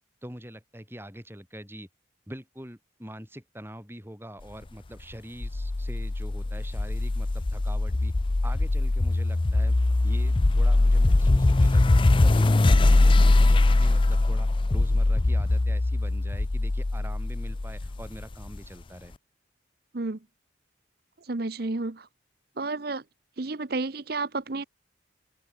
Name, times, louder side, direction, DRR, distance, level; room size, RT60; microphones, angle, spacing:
voice 1, 0.2-1.9 2.3-8.1 8.4-9.8 10.0-19.1, equal, 10° right, 7.5 m, -44 dB
sound 1, 5.4-18.6, left 2 dB, 25° left, 0.4 m, -22 dB
voice 2, 21.3-22.1 22.6-23.0 23.4-24.6, right 3 dB, 55° right, 0.9 m, -31 dB
open air
head